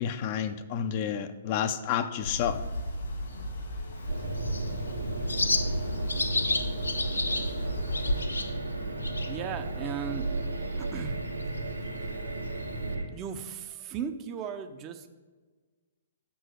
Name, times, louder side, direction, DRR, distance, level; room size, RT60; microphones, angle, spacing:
voice 1, 0.0-2.6, left 9 dB, 40° left, 10 dB, 0.5 m, -30 dB
sound 1, 2.2-8.2, equal, 70° left, 1.8 m, -36 dB
Bird, 4.0-12.9, left 3 dB, 85° left, 0.5 m, -35 dB
sound 2, 4.1-13.0, right 2 dB, 90° right, 1.2 m, -33 dB
voice 2, 9.3-10.3 10.8-11.2 13.1-15.1, right 7 dB, 30° right, 8 dB, 0.5 m, -36 dB
6.1 x 4.6 x 6.4 m, 1.4 s
figure-of-eight pair, 125°, 0 cm